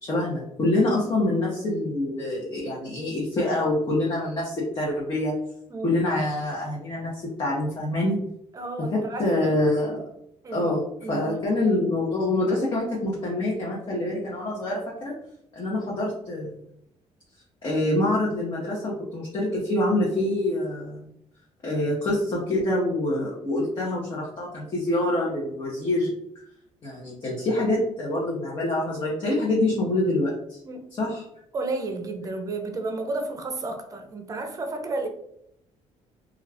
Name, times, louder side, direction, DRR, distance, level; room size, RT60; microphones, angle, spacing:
voice 1, 0.0-5.4 5.8-8.2 8.8-10.0 10.5-15.1 15.6-16.5 17.6-21.0 21.6-26.1 26.8-30.6 31.0-31.2, left 1 dB, 40° left, -5 dB, 0.9 m, -26 dB
voice 2, 5.7-6.2 8.5-9.6 10.4-10.7 11.0-11.4 30.6-30.8 31.5-35.1, right 3 dB, 30° right, 5 dB, 0.5 m, -32 dB
2.4 x 2.3 x 3.3 m, 0.74 s
cardioid pair, 115°, 13 cm